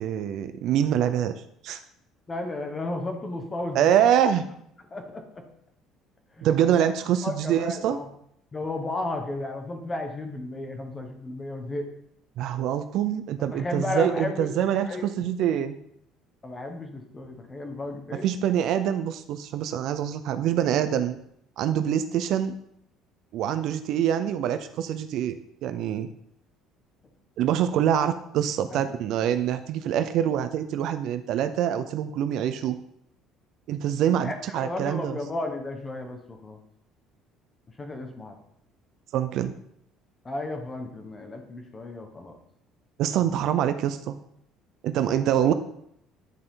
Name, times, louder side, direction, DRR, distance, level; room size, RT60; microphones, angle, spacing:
voice 1, 0.0-1.3 1.6-1.8 3.7-4.4 6.4-8.0 12.4-15.8 18.2-21.2 21.6-22.6 23.3-26.1 27.4-32.8 33.7-35.2 39.1-39.5 43.0-44.2 44.8-45.5, right 10 dB, 55° right, 10 dB, 0.6 m, -25 dB
voice 2, 2.3-4.0 4.9-5.4 6.3-6.9 7.2-8.1 8.5-11.9 13.5-14.5 14.9-15.0 16.4-18.3 28.7-29.0 34.2-36.6 37.8-38.3 40.2-42.4 45.0-45.2, left 2 dB, 15° left, 5 dB, 1.3 m, -34 dB
10.5 x 7.7 x 3.8 m, 0.73 s
cardioid pair, 170°, 0 cm